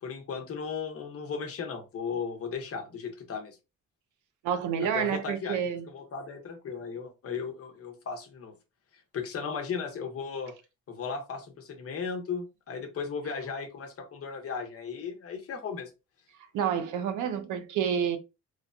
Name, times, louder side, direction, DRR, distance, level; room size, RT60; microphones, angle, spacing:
voice 1, 0.0-3.6 4.8-5.6 5.9-8.6 9.1-10.5 10.9-15.9, left 5 dB, 50° left, 0.8 m, -36 dB
voice 2, 4.4-5.9 16.5-18.2, right 8 dB, 80° right, 0.6 m, -29 dB
3.1 x 2.1 x 2.5 m
cardioid pair, 90°, 30 cm